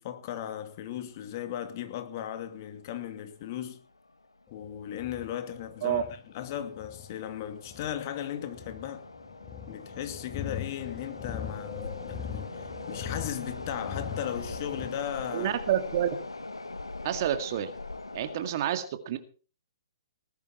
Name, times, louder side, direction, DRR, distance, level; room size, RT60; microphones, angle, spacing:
voice 1, 0.0-3.8 4.5-6.0 6.3-9.1 9.7-15.6, left 10 dB, 40° left, 2.4 m, -37 dB
sound 1, 1.6-1.7 2.0-2.1 2.8-3.1 3.3-3.5 4.1-4.4 4.9-18.5, left 2 dB, 85° left, 1.5 m, -42 dB
sound 2, 4.5-14.9, left 9 dB, 25° left, 1.0 m, -41 dB
voice 2, 15.3-16.1 17.0-17.7 18.1-19.2, right 10 dB, 45° right, 2.0 m, -28 dB
19.5 x 11.5 x 4.4 m
figure-of-eight pair, 125°, 3 cm